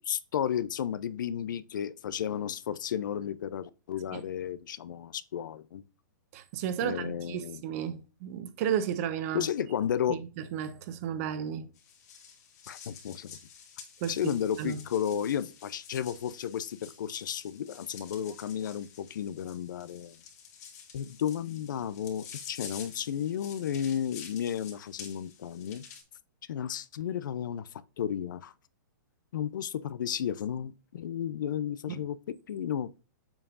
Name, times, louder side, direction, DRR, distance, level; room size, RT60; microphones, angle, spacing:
voice 1, 0.0-5.8 6.8-7.6 9.3-10.2 12.7-13.4 14.1-20.2 20.9-25.8 26.5-27.7 28.0-28.5 29.3-32.9, left 9 dB, 70° left, 0.6 m, -33 dB
voice 2, 6.3-9.5 10.1-11.7 14.0-14.8 31.9-32.0, right 9 dB, 45° right, 1.0 m, -33 dB
sound 1, 11.8-26.0, left 7 dB, 55° left, 2.1 m, -49 dB
7.1 x 5.4 x 2.5 m
hypercardioid pair, 140°, 11 cm